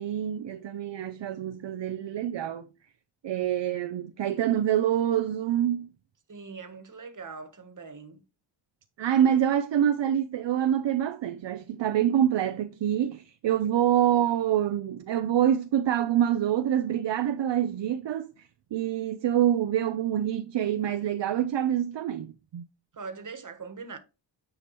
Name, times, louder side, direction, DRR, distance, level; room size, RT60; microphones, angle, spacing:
voice 1, 0.0-2.7 3.2-5.9 9.0-22.6, right 10 dB, 65° right, 0.7 m, -26 dB
voice 2, 6.3-8.2 22.9-24.0, right 4 dB, 40° right, 1.5 m, -41 dB
9.6 x 5.0 x 3.0 m
cardioid pair, 90°, 48 cm